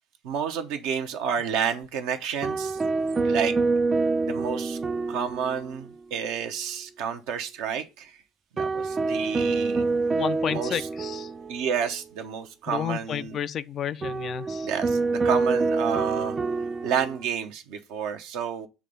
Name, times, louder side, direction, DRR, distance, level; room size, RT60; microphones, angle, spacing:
voice 1, 0.2-2.8 3.2-3.6 4.2-4.8 5.1-8.2 8.5-9.8 10.5-10.9 11.5-13.4 14.6-16.4 16.8-18.7, right 7 dB, 60° right, 0.8 m, -30 dB
sound 1, 2.4-5.9 6.2-6.3 8.6-11.9 14.0-17.2, right 3 dB, 25° right, 0.4 m, -27 dB
voice 2, 10.2-11.3 12.7-14.7, left 9 dB, 45° left, 0.3 m, -31 dB
7.3 x 3.3 x 5.2 m
figure-of-eight pair, 65°, 0 cm